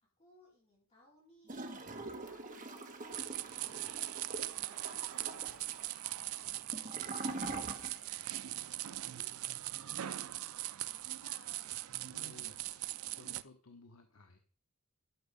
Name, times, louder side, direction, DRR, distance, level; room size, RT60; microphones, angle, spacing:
voice 1, 0.2-3.9 4.2-6.0 6.3-7.3 7.6-9.3 9.7-11.7, left 1 dB, 30° left, -5 dB, 4.5 m, -65 dB
Gurgling / Toilet flush, 1.5-8.3 8.6-8.7, right 2 dB, 35° right, 1.4 m, -44 dB
sound 1, 3.1-13.4, right 15 dB, 70° right, 0.4 m, -41 dB
voice 2, 12.1-12.6 13.1-14.4, left 3 dB, 70° left, 5 dB, 1.1 m, -57 dB
13.0 x 6.3 x 5.2 m, 0.43 s
head